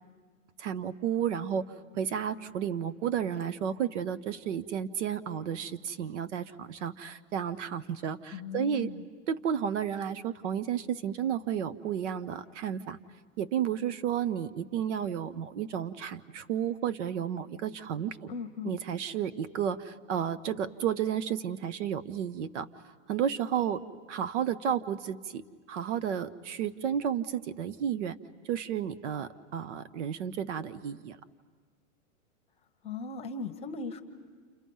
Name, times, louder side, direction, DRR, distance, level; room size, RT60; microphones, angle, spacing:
voice 1, 0.6-1.6 1.9-8.9 9.3-13.0 13.4-18.3 18.6-22.7 23.1-23.8 24.1-25.4 25.7-28.2 28.4-31.2, right 9 dB, 60° right, 16 dB, 1.0 m, -32 dB
voice 2, 8.3-9.0 18.3-18.8 32.8-34.0, left 5 dB, 15° left, 7 dB, 1.0 m, -38 dB
29.5 x 29.0 x 5.5 m, 1.5 s
hypercardioid pair, 150°, 40 cm